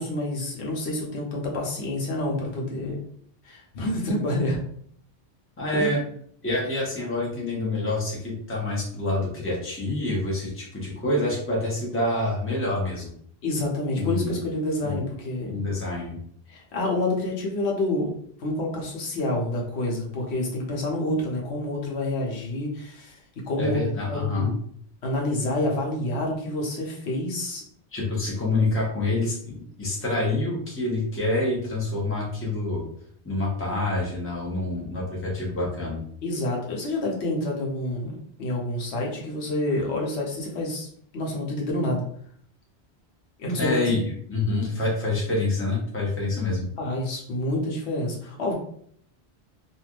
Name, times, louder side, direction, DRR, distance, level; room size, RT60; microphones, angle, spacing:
voice 1, 0.0-3.0 3.4-4.6 5.7-5.9 13.4-15.6 16.5-18.1 18.4-23.2 23.5-24.6 25.0-27.6 36.2-40.9 41.1-42.0 43.4-43.8 46.8-48.5, left 1 dB, 85° left, -1 dB, 1.1 m, -28 dB
voice 2, 5.6-6.0 6.4-13.1 13.9-14.4 14.8-15.0 15.5-16.2 23.6-24.5 27.9-32.8 33.2-36.0 43.6-46.7, left 2 dB, 15° left, -4 dB, 0.9 m, -27 dB
3.2 x 2.6 x 2.4 m, 0.62 s
omnidirectional pair, 1.1 m